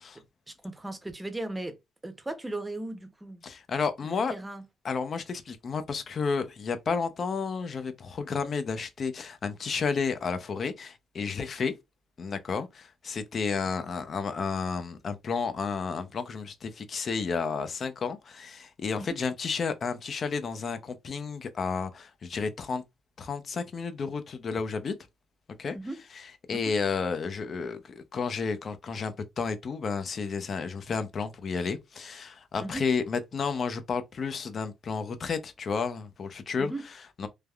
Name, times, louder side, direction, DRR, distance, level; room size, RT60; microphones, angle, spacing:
voice 1, 0.6-1.7 2.0-3.4 4.0-4.6 19.0-19.1 25.7-26.0 26.5-26.6 32.6-32.8 36.6-36.8, right 2 dB, 15° right, 0.7 m, -36 dB
voice 2, 3.4-4.3 4.8-11.7 12.2-22.8 23.2-24.9 25.6-25.8 26.1-37.3, left 5 dB, 50° left, 0.5 m, -32 dB
3.3 x 2.1 x 2.3 m
cardioid pair, 90°, 0 cm